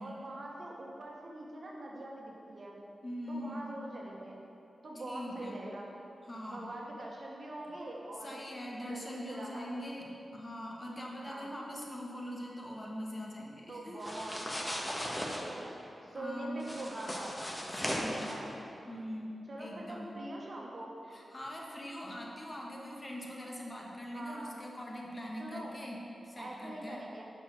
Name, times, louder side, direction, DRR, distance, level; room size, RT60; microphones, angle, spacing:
voice 1, 0.0-2.8 3.3-4.4 4.8-5.9 6.5-8.4 8.8-10.0 11.2-11.5 13.7-17.4 18.2-18.5 19.5-20.9 24.1-24.6 25.4-25.8 26.3-27.3, right 1 dB, 60° right, -2 dB, 1.3 m, -44 dB
voice 2, 3.0-3.7 5.1-5.6 6.3-6.7 8.2-14.1 16.1-16.6 17.8-18.3 18.9-20.1 21.1-27.0, equal, 35° left, -2 dB, 1.4 m, -42 dB
sound 1, 14.0-15.4 16.6-18.4, equal, 15° left, 1.3 m, -37 dB
5.8 x 4.7 x 6.4 m, 2.8 s
cardioid pair, 40°, 0 cm